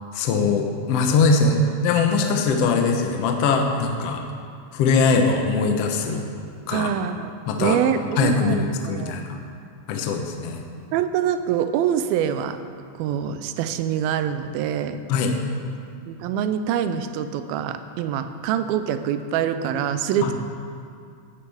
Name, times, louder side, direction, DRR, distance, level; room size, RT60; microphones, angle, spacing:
voice 1, 0.1-4.2 4.7-6.2 6.7-6.9 7.5-7.8 8.2-9.4 9.9-10.6 15.1-15.4 20.2-20.3, left 4 dB, 80° left, 3 dB, 1.4 m, -21 dB
voice 2, 6.7-7.3 7.6-9.2 10.9-12.6 13.0-15.0 16.1-20.3, right 9 dB, 90° right, 10 dB, 2.4 m, -25 dB
16.5 x 9.9 x 3.5 m, 2.4 s
omnidirectional pair, 4.2 m